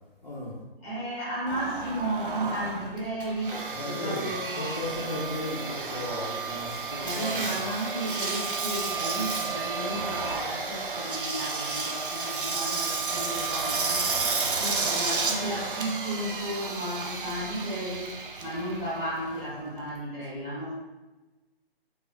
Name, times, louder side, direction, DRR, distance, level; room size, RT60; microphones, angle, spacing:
voice 1, 0.2-0.5 3.7-7.7, left 1 dB, 40° left, -6 dB, 0.6 m, -35 dB
voice 2, 0.8-4.7 7.0-14.1 14.6-20.7, right 1 dB, 15° left, -8 dB, 0.9 m, -34 dB
Engine, 1.5-19.9, right 4 dB, 55° right, 0.5 m, -32 dB
3.2 x 2.2 x 2.8 m, 1.1 s
figure-of-eight pair, 145°, 31 cm